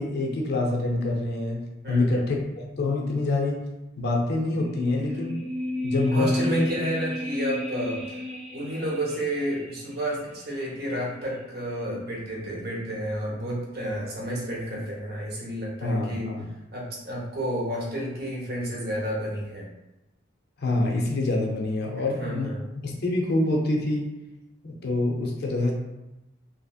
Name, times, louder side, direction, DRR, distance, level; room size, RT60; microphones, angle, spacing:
voice 1, 0.0-3.6 4.0-5.4 5.8-6.6 15.8-16.5 20.6-22.5 22.8-24.1 24.6-25.7, left 2 dB, 55° left, 0 dB, 0.6 m, -26 dB
voice 2, 1.8-2.3 6.1-8.0 8.5-16.3 16.7-19.7 22.2-22.7, right 1 dB, 55° right, -3 dB, 0.8 m, -31 dB
sound 1, 4.5-9.8 10.1-10.2, left 1 dB, 30° right, 0.5 m, -32 dB
2.8 x 2.7 x 2.4 m, 0.98 s
head